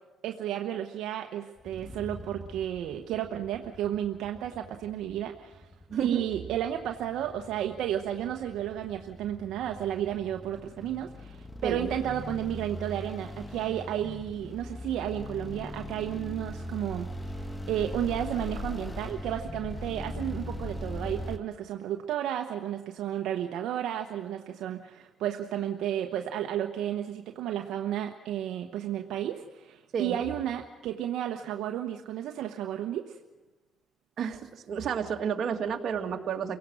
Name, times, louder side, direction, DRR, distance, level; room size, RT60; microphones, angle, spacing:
voice 1, 0.2-5.7 6.0-33.2, right 11 dB, 85° right, 4 dB, 1.1 m, -33 dB
sound 1, 1.6-21.4, left 1 dB, 10° left, 1.6 m, -40 dB
voice 2, 5.9-6.3 11.6-11.9 29.9-30.2 34.2-36.6, right 7 dB, 65° right, 4 dB, 2.2 m, -31 dB
29.5 x 17.5 x 6.4 m, 1.2 s
cardioid pair, 90°, 0 cm